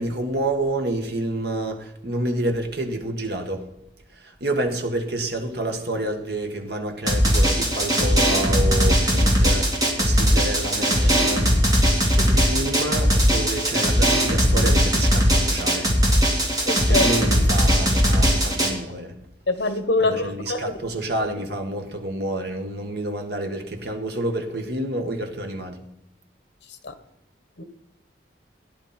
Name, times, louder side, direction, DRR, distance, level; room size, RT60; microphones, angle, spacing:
voice 1, 0.0-3.7 4.1-15.9 16.9-19.2 20.0-25.8, right 1 dB, 60° right, 1.7 m, -29 dB
Drum, 7.1-18.7, equal, 20° right, 2.5 m, -19 dB
voice 2, 16.7-17.1 19.5-20.7 26.8-26.9 27.6-27.7, left 2 dB, 75° left, 1.3 m, -24 dB
17.0 x 10.5 x 4.4 m
head